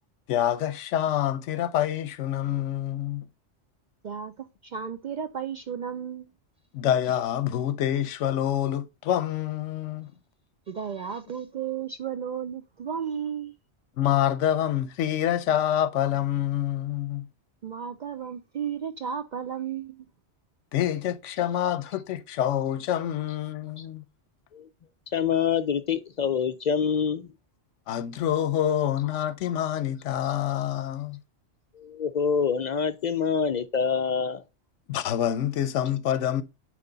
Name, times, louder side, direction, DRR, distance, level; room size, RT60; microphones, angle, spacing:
voice 1, 0.3-3.3 6.7-10.1 14.0-17.3 20.7-24.0 27.9-31.2 34.9-36.4, left 11 dB, 90° left, 0.9 m, -27 dB
voice 2, 4.0-6.3 10.7-13.5 17.6-20.1, right 8 dB, 60° right, 0.4 m, -34 dB
voice 3, 25.1-27.3 31.8-34.4, left 6 dB, 60° left, 0.4 m, -26 dB
9.3 x 3.3 x 3.9 m
omnidirectional pair, 1.2 m